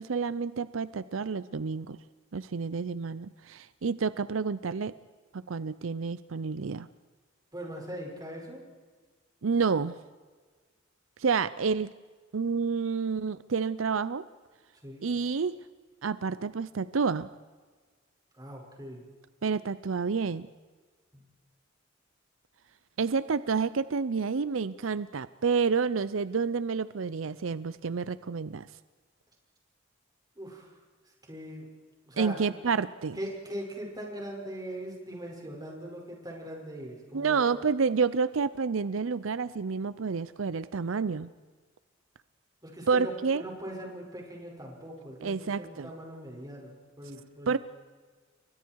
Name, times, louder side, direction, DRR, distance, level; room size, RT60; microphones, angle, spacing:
voice 1, 0.0-2.0 2.3-4.9 5.3-6.9 9.4-10.0 11.2-11.9 12.3-14.2 15.0-15.6 16.0-17.3 19.4-20.5 23.0-28.7 32.2-33.2 37.1-41.3 42.9-43.4 45.2-45.9 47.5-47.6, right 5 dB, 80° right, 16 dB, 0.6 m, -29 dB
voice 2, 7.5-8.7 14.8-15.1 18.4-19.0 21.1-21.2 30.4-30.7 31.2-31.7 32.1-32.4 33.2-37.4 42.6-47.6, right 1 dB, 20° right, -1 dB, 5.9 m, -41 dB
30.0 x 23.5 x 4.7 m, 1.4 s
head